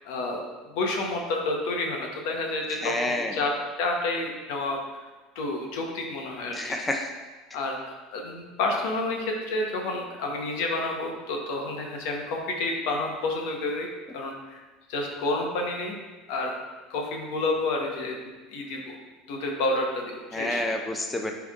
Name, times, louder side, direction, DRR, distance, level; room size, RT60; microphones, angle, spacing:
voice 1, 0.0-3.5 3.8-4.8 5.3-6.8 7.5-13.9 14.1-14.6 14.9-15.9 16.3-16.5 16.9-18.1 18.5-19.0 19.3-20.6, left 2 dB, 75° left, 1 dB, 1.4 m, -29 dB
voice 2, 2.8-3.3 6.5-7.1 20.3-21.3, left 1 dB, 15° left, 3 dB, 0.7 m, -28 dB
10.5 x 3.7 x 3.7 m, 1.2 s
supercardioid pair, 90°, 0 cm